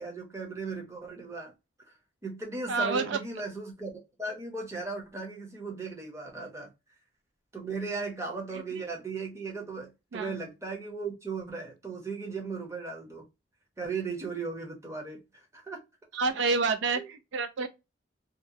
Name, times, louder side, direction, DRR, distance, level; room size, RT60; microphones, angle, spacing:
voice 1, 0.0-1.5 2.2-6.7 7.5-13.2 13.8-15.8 16.9-17.1, right 4 dB, 15° right, 0.7 m, -37 dB
voice 2, 2.7-3.2 8.5-8.6 10.1-10.3 16.1-17.7, right 4 dB, 65° right, 0.3 m, -28 dB
2.8 x 2.1 x 2.5 m
head